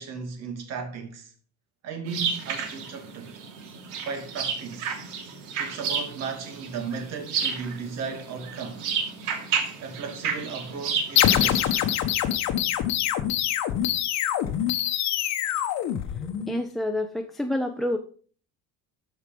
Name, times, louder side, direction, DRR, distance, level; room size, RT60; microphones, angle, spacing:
voice 1, 0.0-1.3 1.8-3.4 4.0-4.9 5.6-8.8 9.8-11.7, right 5 dB, 55° right, 2.8 m, -35 dB
sound 1, 2.1-11.5, right 6 dB, 80° right, 2.9 m, -32 dB
sound 2, 11.2-16.6, left 11 dB, 60° left, 1.2 m, -25 dB
voice 2, 16.5-18.0, left 1 dB, ahead, 0.6 m, -28 dB
13.5 x 5.0 x 5.3 m
cardioid pair, 145°, 31 cm